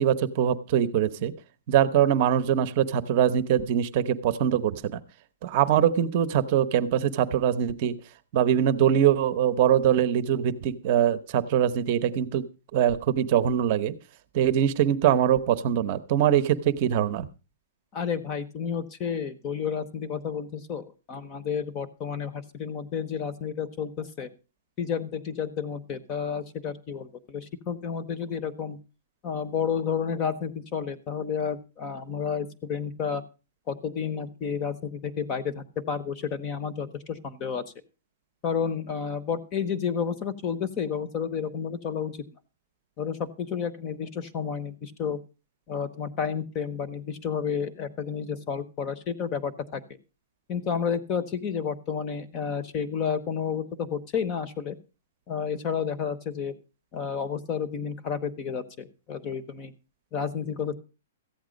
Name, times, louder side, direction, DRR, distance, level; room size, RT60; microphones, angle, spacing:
voice 1, 0.0-1.3 1.7-5.0 5.4-8.0 8.3-12.4 12.7-13.9 14.3-17.3, right 10 dB, 30° right, 14 dB, 0.9 m, -23 dB
voice 2, 17.9-24.3 24.8-28.8 29.2-33.2 33.7-37.6 38.4-42.2 43.0-45.2 45.7-49.8 50.5-54.8 55.3-56.5 56.9-59.7 60.1-60.7, left 7 dB, 20° left, 13 dB, 0.9 m, -31 dB
14.5 x 9.4 x 5.1 m, 0.32 s
hypercardioid pair, 175°, 0 cm